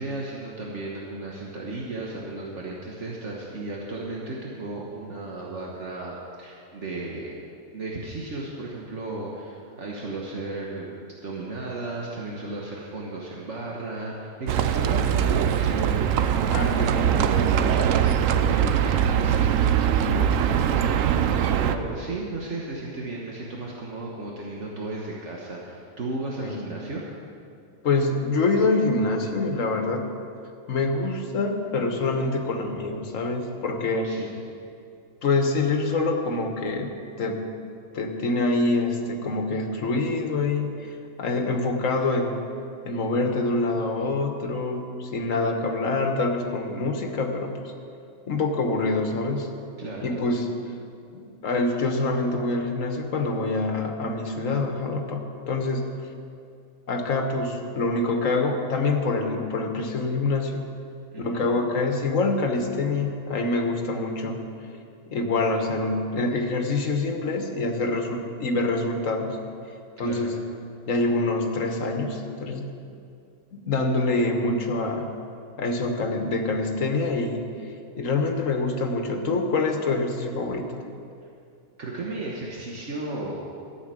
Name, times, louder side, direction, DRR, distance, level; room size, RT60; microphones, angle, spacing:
voice 1, 0.0-7.4 7.7-27.0 32.2-32.6 34.0-34.4 49.8-50.1 61.1-61.5 70.0-70.4 81.8-83.4, right 2 dB, 65° right, -3 dB, 1.6 m, -35 dB
Livestock farm animals working animals, 14.5-21.8, right 9 dB, 90° right, 1.0 m, -22 dB
voice 2, 16.5-17.3 26.4-26.6 27.8-30.0 30.7-34.2 35.2-37.4 37.9-40.9 41.2-42.4 42.8-47.5 48.3-49.5 50.0-50.5 51.1-55.9 56.9-60.6 61.2-64.4 65.1-69.4 70.0-70.4 70.9-72.7 73.5-75.1 75.6-77.5 78.0-80.8, left 3 dB, 80° left, 4 dB, 1.6 m, -25 dB
12.5 x 7.3 x 8.9 m, 2.6 s
omnidirectional pair, 1.3 m